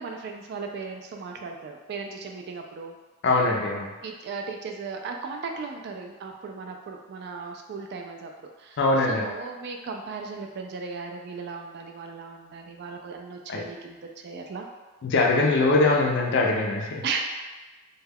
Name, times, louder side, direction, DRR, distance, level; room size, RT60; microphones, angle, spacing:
voice 1, 0.0-2.9 4.0-14.7 17.0-17.2, right 4 dB, 50° right, 3 dB, 0.3 m, -36 dB
voice 2, 3.2-3.9 8.8-9.3 13.5-13.6 15.0-17.0, left 2 dB, 55° left, 1 dB, 0.4 m, -22 dB
2.2 x 2.2 x 3.3 m, 1.2 s
head